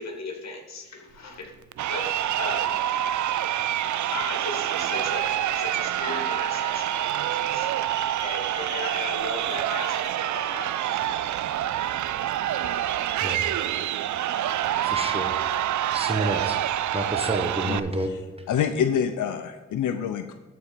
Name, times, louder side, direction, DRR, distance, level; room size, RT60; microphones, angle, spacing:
voice 1, 0.0-1.5 1.9-2.1 2.4-2.9 4.1-11.2, left 2 dB, 60° left, 2 dB, 2.3 m, -37 dB
Crowd, 1.7-17.8, right 12 dB, 70° right, 0.5 m, -27 dB
voice 2, 14.8-15.4 15.9-16.6 16.9-18.1, right 1 dB, 20° right, 5 dB, 1.3 m, -29 dB
voice 3, 18.5-20.3, left 8 dB, 80° left, 8 dB, 0.6 m, -26 dB
12.5 x 4.2 x 5.1 m, 1.2 s
cardioid pair, 65°, 30 cm